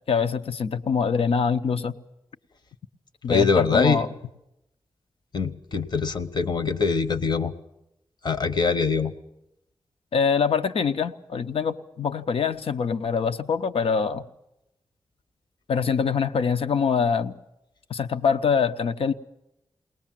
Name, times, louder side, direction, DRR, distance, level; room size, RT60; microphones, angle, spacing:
voice 1, 0.1-1.9 3.2-4.1 10.1-14.3 15.7-17.3 17.9-19.1, left 6 dB, 80° left, 9 dB, 0.7 m, -24 dB
voice 2, 3.3-4.0 5.3-7.5 8.2-9.1, left 5 dB, 50° left, 11 dB, 0.9 m, -23 dB
21.5 x 18.5 x 7.5 m, 0.88 s
wide cardioid pair, 130°, 10 cm